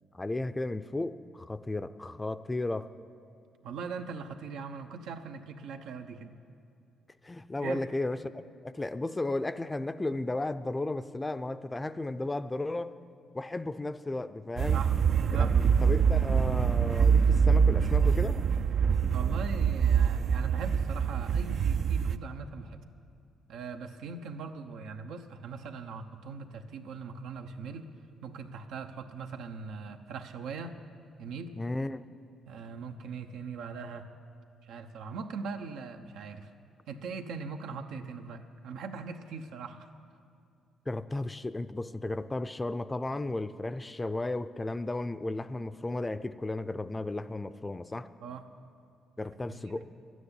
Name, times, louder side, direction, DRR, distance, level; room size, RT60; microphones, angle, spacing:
voice 1, 0.1-2.9 7.2-8.3 8.6-13.0 13.3-14.8 15.3-18.4 31.6-32.0 40.9-48.1 49.2-49.9, left 2 dB, 20° left, 13 dB, 0.5 m, -34 dB
voice 2, 3.6-6.4 7.6-7.8 14.7-14.9 15.2-15.5 19.1-22.8 23.5-27.9 28.2-30.7 31.2-31.6 32.5-34.1 34.7-36.5 36.9-39.9 48.2-48.4 49.5-49.8, right 5 dB, 85° right, 5 dB, 0.9 m, -40 dB
sound 1, 14.6-22.2, right 6 dB, 55° right, 0.4 m, -25 dB
12.0 x 9.4 x 9.8 m, 2.5 s
cardioid pair, 90°, 0 cm